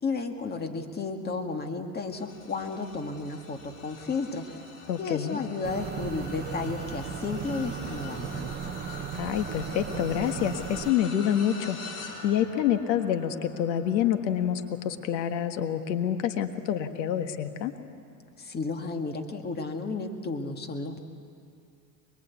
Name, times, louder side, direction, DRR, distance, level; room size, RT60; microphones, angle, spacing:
voice 1, 0.0-4.6 5.0-8.8 18.4-21.0, left 4 dB, 20° left, 5 dB, 2.0 m, -33 dB
sound 1, 2.1-17.6 18.1-18.4 19.6-19.7, left 4 dB, 40° left, 4.4 m, -45 dB
voice 2, 4.9-5.4 9.1-11.8 12.2-17.7, left 10 dB, 85° left, 8 dB, 1.7 m, -27 dB
sound 2, 5.6-10.9, right 9 dB, 20° right, 0.5 m, -36 dB
24.0 x 23.0 x 8.4 m, 2.3 s
supercardioid pair, 120°, 50 cm